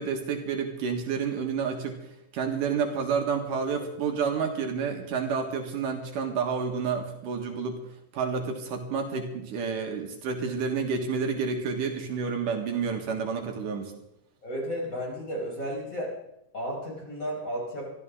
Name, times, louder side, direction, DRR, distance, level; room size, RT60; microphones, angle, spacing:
voice 1, 0.0-2.0 2.3-7.8 8.1-13.9, right 5 dB, 75° right, 3 dB, 3.1 m, -29 dB
voice 2, 14.4-16.1 16.5-17.9, equal, 25° left, -3 dB, 5.6 m, -33 dB
24.0 x 14.0 x 3.8 m, 0.87 s
omnidirectional pair, 3.8 m